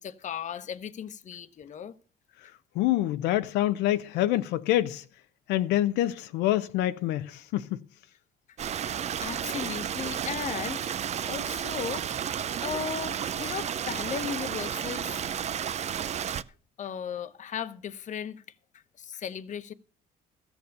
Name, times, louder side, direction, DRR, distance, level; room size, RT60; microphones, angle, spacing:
voice 1, 0.0-1.9 8.9-10.8 11.3-12.1 12.6-15.2 16.8-18.4 19.0-19.7, left 8 dB, 45° left, 1.0 m, -36 dB
voice 2, 2.8-5.0 5.5-7.8, left 14 dB, 90° left, 0.6 m, -26 dB
Stream, 8.6-16.4, right 9 dB, 40° right, 0.6 m, -32 dB
14.5 x 7.1 x 6.6 m
cardioid pair, 110°, 17 cm